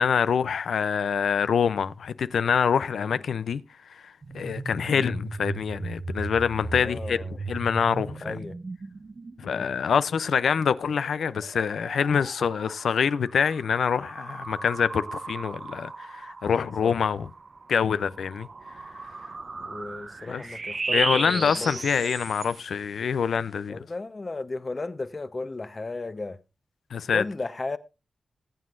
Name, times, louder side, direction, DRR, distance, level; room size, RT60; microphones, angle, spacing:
voice 1, 0.0-3.6 3.9-7.2 7.5-8.4 9.4-17.3 17.7-18.5 20.3-20.4 20.9-23.8 26.9-27.2, left 7 dB, 85° left, 0.4 m, -25 dB
sound 1, 4.2-10.2 10.8-22.9, right 3 dB, 45° right, 0.7 m, -36 dB
voice 2, 6.7-7.4 8.2-8.6 9.5-9.7 16.8-17.0 19.6-22.1 23.7-26.4 27.1-27.8, left 3 dB, 40° left, 0.8 m, -35 dB
20.0 x 7.6 x 2.5 m
cardioid pair, 60°, 0 cm